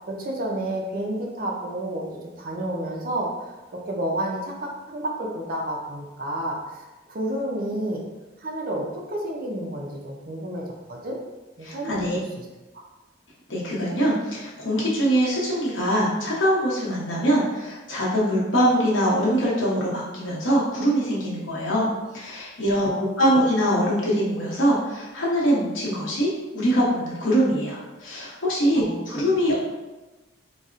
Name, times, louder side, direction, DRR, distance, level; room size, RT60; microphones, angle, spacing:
voice 1, 0.0-8.0 8.4-11.2 11.6-12.5 12.7-12.8 22.8-23.4 28.7-29.0 29.5-29.6, right 1 dB, 50° right, -1 dB, 0.5 m, -31 dB
voice 2, 11.6-12.2 13.5-22.9 23.2-29.6, equal, 80° left, -5 dB, 0.9 m, -23 dB
4.0 x 2.0 x 2.5 m, 1.1 s
head